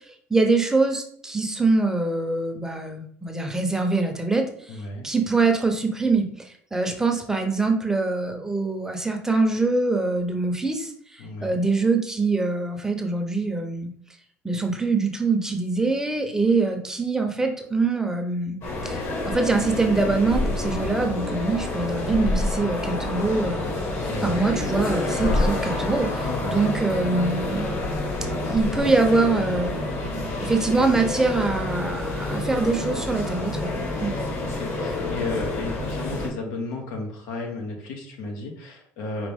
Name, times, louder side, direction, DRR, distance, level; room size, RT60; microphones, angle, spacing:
voice 1, 0.3-4.8 5.0-13.9 14.4-19.0 19.2-23.6 24.2-27.8 28.5-29.7 30.4-33.7 34.0-34.1, right 3 dB, 10° right, 4 dB, 0.7 m, -24 dB
voice 2, 4.7-5.1 11.2-11.6 24.1-24.4 26.2-26.6 34.4-39.3, left 3 dB, 80° left, 2 dB, 1.2 m, -33 dB
sound 1, 18.6-36.3, left 2 dB, 60° left, 1.9 m, -28 dB
5.1 x 2.9 x 3.5 m, 0.62 s
cardioid pair, 100°, 6 cm